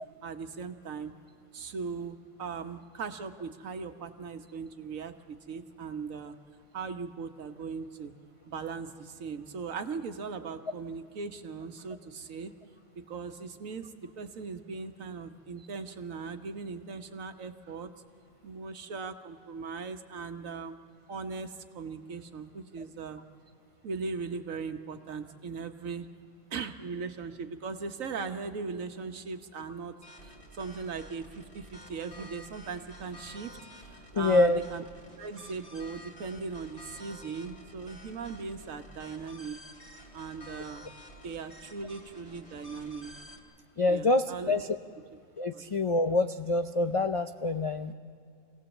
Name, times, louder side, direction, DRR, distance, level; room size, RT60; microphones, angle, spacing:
voice 1, 0.2-1.1 1.5-6.4 6.7-8.1 8.5-12.5 12.9-17.9 18.4-20.8 21.1-23.2 23.8-26.1 26.5-29.9 30.2-34.8 35.2-39.6 40.1-40.9 41.2-43.1 43.9-44.6 45.5-45.7, right 5 dB, 85° right, 7 dB, 1.5 m, -39 dB
sound 1, 30.0-43.4, equal, 30° left, 2.7 m, -50 dB
voice 2, 34.1-34.6 43.8-44.6 45.4-47.9, left 2 dB, 65° left, 8 dB, 0.3 m, -26 dB
25.5 x 17.5 x 7.2 m, 2.4 s
omnidirectional pair, 1.4 m